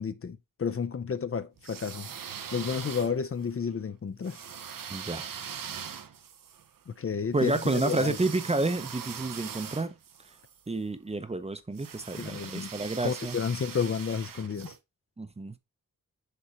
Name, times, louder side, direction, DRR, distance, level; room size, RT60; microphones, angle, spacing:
voice 1, 0.0-2.1 2.5-4.4 6.9-8.2 12.2-12.7 13.0-14.8, left 6 dB, 45° left, 0.6 m, -31 dB
sound 1, 1.6-3.5 4.2-10.6 11.7-14.8, right 8 dB, 85° right, 0.9 m, -42 dB
voice 2, 4.9-5.3 7.3-9.9 10.7-13.4 15.2-15.6, right 2 dB, 20° right, 0.6 m, -30 dB
6.8 x 4.3 x 4.8 m
wide cardioid pair, 145°, 32 cm